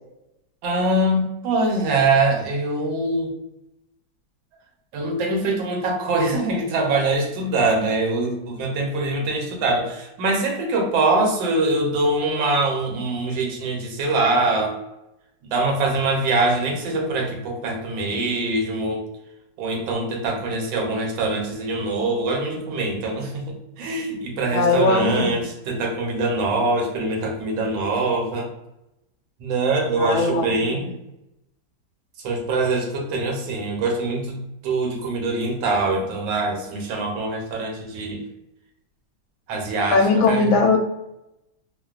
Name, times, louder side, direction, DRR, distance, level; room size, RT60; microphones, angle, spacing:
voice 1, 0.6-3.3 4.9-14.8 15.4-19.1 19.6-28.5 29.4-30.9 32.2-38.2 39.5-40.5, right 2 dB, 75° right, 1 dB, 1.4 m, -23 dB
voice 2, 24.5-25.5 30.0-30.9 39.9-40.8, left 3 dB, 80° left, 3 dB, 1.3 m, -20 dB
3.3 x 2.1 x 2.3 m, 0.88 s
omnidirectional pair, 2.1 m